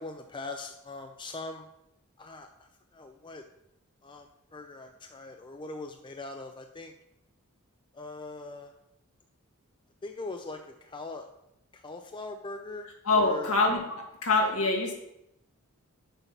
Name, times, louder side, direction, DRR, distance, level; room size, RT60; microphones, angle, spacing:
voice 1, 0.0-1.6 2.2-3.4 4.0-6.9 7.9-8.7 10.0-11.3 11.7-13.8, left 3 dB, 20° left, 5 dB, 0.4 m, -41 dB
voice 2, 13.1-14.9, left 3 dB, 70° left, 0 dB, 1.8 m, -25 dB
6.8 x 5.7 x 5.8 m, 0.83 s
head